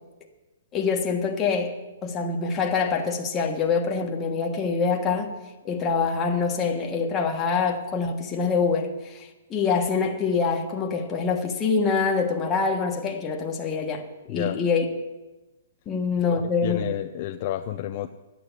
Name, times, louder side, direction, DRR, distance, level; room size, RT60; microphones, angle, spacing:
voice 1, 0.7-1.7 2.0-5.3 5.6-14.8 15.9-16.8, left 5 dB, 15° left, 1.4 m, -25 dB
voice 2, 14.3-14.6 16.4-18.1, left 12 dB, 35° left, 0.5 m, -30 dB
12.0 x 9.3 x 8.3 m
hypercardioid pair, 160°, 0 cm